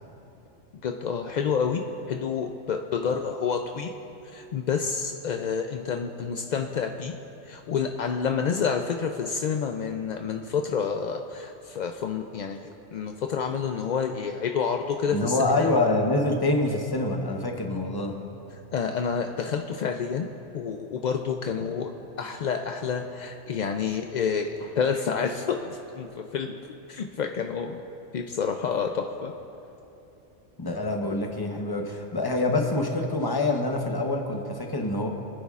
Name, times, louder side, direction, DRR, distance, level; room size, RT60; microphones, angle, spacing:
voice 1, 0.8-1.8 2.1-3.9 4.3-7.1 7.5-15.7 18.7-20.3 20.5-21.9 22.2-27.8 28.1-29.3, left 6 dB, 65° left, 4 dB, 0.4 m, -29 dB
voice 2, 15.1-18.1 30.6-35.1, left 2 dB, 20° left, 2 dB, 0.8 m, -26 dB
24.5 x 9.4 x 2.4 m, 2.8 s
omnidirectional pair, 1.3 m